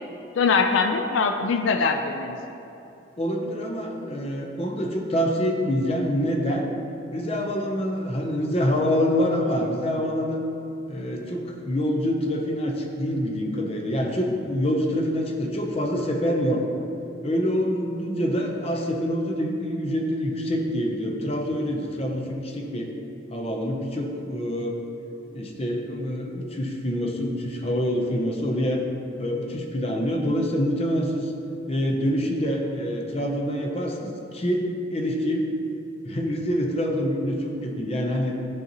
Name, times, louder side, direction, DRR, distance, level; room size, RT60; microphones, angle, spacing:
voice 1, 0.3-2.4, left 4 dB, 75° left, 6 dB, 0.4 m, -22 dB
voice 2, 3.2-6.7 7.1-10.4 10.9-16.6 17.2-22.9 23.3-24.8 25.3-28.8 29.2-31.3 31.7-35.5 36.0-38.3, equal, 30° left, 1 dB, 0.7 m, -26 dB
12.0 x 4.0 x 2.9 m, 2.9 s
head